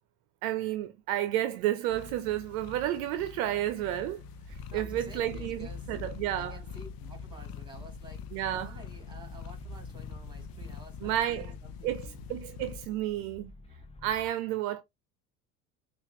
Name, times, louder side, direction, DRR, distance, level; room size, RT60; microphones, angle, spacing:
voice 1, 0.4-4.2 4.7-6.6 8.3-8.8 11.0-11.5 11.8-13.5 14.0-14.8, right 13 dB, 65° right, 0.6 m, -31 dB
sound 1, 1.9-12.9, left 6 dB, 50° left, 0.6 m, -44 dB
sound 2, 4.5-14.3, equal, 15° left, 0.6 m, -49 dB
voice 2, 4.6-5.9 6.4-8.3 8.6-12.2 12.9-13.0, right 1 dB, 10° right, 2.5 m, -51 dB
5.7 x 2.5 x 2.8 m
hypercardioid pair, 65°, 46 cm